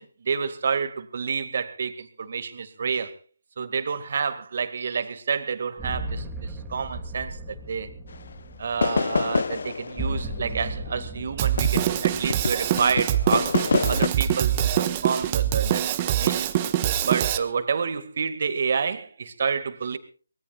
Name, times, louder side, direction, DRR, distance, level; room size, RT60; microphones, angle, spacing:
voice 1, 0.0-3.2 3.6-7.9 8.6-13.6 13.9-16.5 17.0-20.0, right 6 dB, 50° right, 2.1 m, -29 dB
sound 1, 5.8-14.7, right 1 dB, 5° right, 2.6 m, -37 dB
sound 2, 8.1-8.3 8.8-12.0 12.3-14.1, left 5 dB, 55° left, 0.8 m, -26 dB
Drum kit, 11.4-17.4, right 11 dB, 25° right, 1.2 m, -24 dB
24.0 x 20.5 x 2.5 m
figure-of-eight pair, 155°, 0 cm